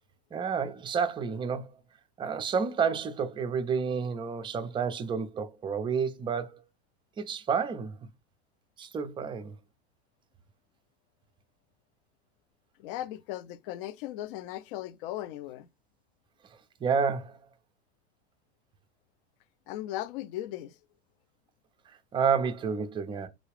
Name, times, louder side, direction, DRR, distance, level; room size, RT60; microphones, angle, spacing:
voice 1, 0.3-1.7 2.2-6.6 7.2-8.0 8.8-9.5 16.8-17.4 21.9-23.3, right 6 dB, 15° right, 0.4 m, -30 dB
voice 2, 12.8-15.7 19.7-20.8, left 14 dB, 50° left, 0.4 m, -37 dB
3.8 x 2.3 x 3.3 m
hypercardioid pair, 95°, 35 cm